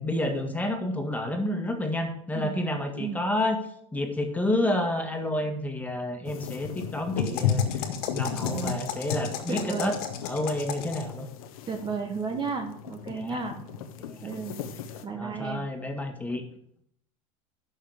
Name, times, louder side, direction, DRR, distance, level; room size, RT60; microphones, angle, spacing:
voice 1, 0.0-3.6 3.9-7.9 8.1-10.0 10.2-11.3 13.1-13.4 14.0-14.3 15.2-16.4, left 1 dB, 10° left, 4 dB, 1.8 m, -30 dB
sound 1, 6.2-15.0, left 7 dB, 85° left, 1.1 m, -34 dB
sound 2, 7.2-11.2, left 9 dB, 60° left, 1.8 m, -37 dB
voice 2, 8.4-8.8 9.5-10.0 11.7-13.6 14.2-14.6 15.0-15.7, right 5 dB, 25° right, 5 dB, 1.1 m, -33 dB
11.5 x 6.5 x 4.9 m, 0.70 s
supercardioid pair, 110°, 17 cm